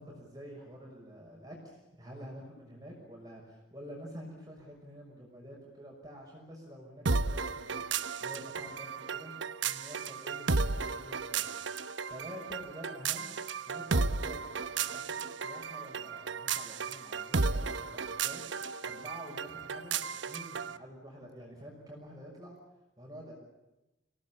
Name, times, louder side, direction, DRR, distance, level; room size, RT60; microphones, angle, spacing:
voice 1, 0.0-9.3 9.6-11.5 12.1-22.6 23.0-23.3, equal, 20° right, -1 dB, 6.0 m, -48 dB
sound 1, 7.1-20.8, right 4 dB, 75° right, 1.0 m, -34 dB
27.0 x 18.0 x 8.6 m, 0.98 s
head